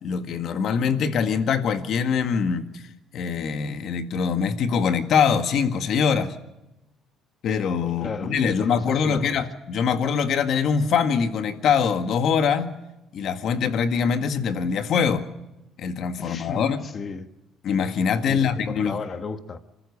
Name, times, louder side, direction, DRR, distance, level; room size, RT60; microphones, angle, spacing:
voice 1, 0.0-2.8 3.1-6.4 7.4-12.8 13.1-15.3 15.8-16.9 17.6-18.9, left 6 dB, 60° left, 1.8 m, -23 dB
voice 2, 8.0-9.4 16.2-17.3 18.3-19.6, left 5 dB, 35° left, 1.4 m, -34 dB
26.5 x 14.0 x 8.2 m
cardioid pair, 110°, 0 cm